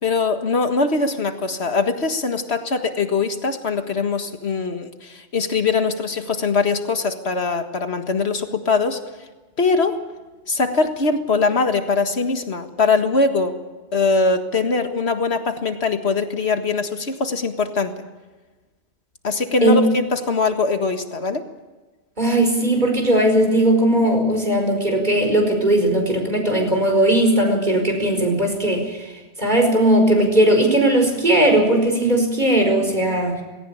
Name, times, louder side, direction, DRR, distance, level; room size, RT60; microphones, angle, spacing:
voice 1, 0.0-9.0 9.6-10.0 10.5-13.6 13.9-17.9 19.2-21.4, left 4 dB, 75° left, 7 dB, 2.0 m, -22 dB
voice 2, 22.2-29.1 29.4-33.4, right 1 dB, 40° right, 3 dB, 5.0 m, -18 dB
19.0 x 18.0 x 8.7 m, 1.2 s
omnidirectional pair, 1.1 m